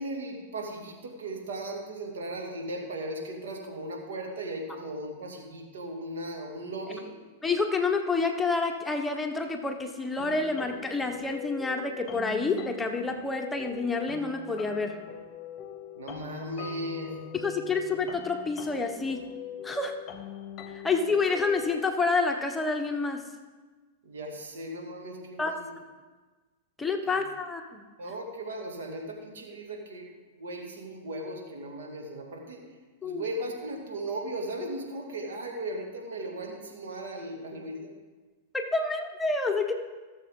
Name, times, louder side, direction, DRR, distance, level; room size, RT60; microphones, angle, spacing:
voice 1, 0.0-7.1 15.9-17.2 24.0-25.7 27.1-27.2 28.0-30.1 30.4-32.6 33.0-37.9, right 1 dB, 70° right, 1 dB, 2.3 m, -37 dB
voice 2, 7.4-15.0 17.3-19.2 19.6-20.0 20.7-23.2 25.4-25.6 26.8-27.8 33.0-33.2 38.5-39.7, left 3 dB, 10° left, 3 dB, 1.1 m, -28 dB
sound 1, 10.2-22.0, left 9 dB, 35° left, 1.1 m, -42 dB
17.5 x 7.2 x 3.9 m, 1.3 s
hypercardioid pair, 105°, 0 cm